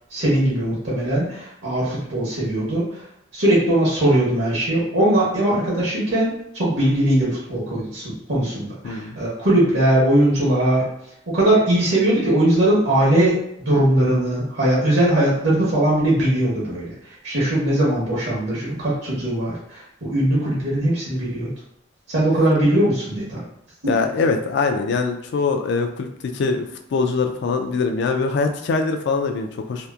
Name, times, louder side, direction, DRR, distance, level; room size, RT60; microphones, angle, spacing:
voice 1, 0.1-3.0 3.3-10.8 11.3-16.9 17.2-21.5 22.1-23.4 23.8-23.9, right 1 dB, 70° right, -7 dB, 0.9 m, -20 dB
voice 2, 8.8-9.2 17.7-17.9 23.9-29.9, left 4 dB, 60° left, 5 dB, 0.3 m, -23 dB
2.8 x 2.1 x 2.3 m, 0.75 s
head